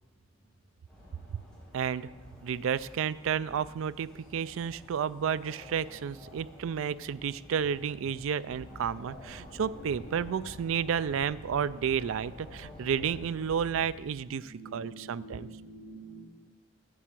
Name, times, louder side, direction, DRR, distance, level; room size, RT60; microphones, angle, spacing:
sound 1, 0.9-13.1, left 1 dB, 5° left, 3.9 m, -52 dB
voice 1, 1.7-2.1 2.4-15.5, right 7 dB, 70° right, 16 dB, 0.3 m, -31 dB
sound 2, 8.5-14.0, left 2 dB, 40° left, 1.0 m, -49 dB
voice 2, 9.5-10.2 14.4-16.2, right 1 dB, 10° right, -10 dB, 2.6 m, -47 dB
9.5 x 6.9 x 7.5 m, 1.2 s
head